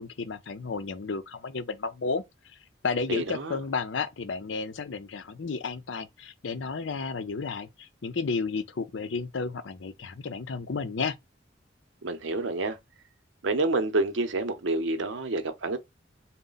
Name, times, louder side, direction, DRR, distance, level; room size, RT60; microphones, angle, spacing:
voice 1, 0.0-2.2 2.8-11.1, left 4 dB, 85° left, 0.6 m, -32 dB
voice 2, 3.1-3.6 12.0-12.8 13.4-15.8, right 2 dB, 90° right, 0.7 m, -28 dB
4.0 x 2.1 x 3.9 m
head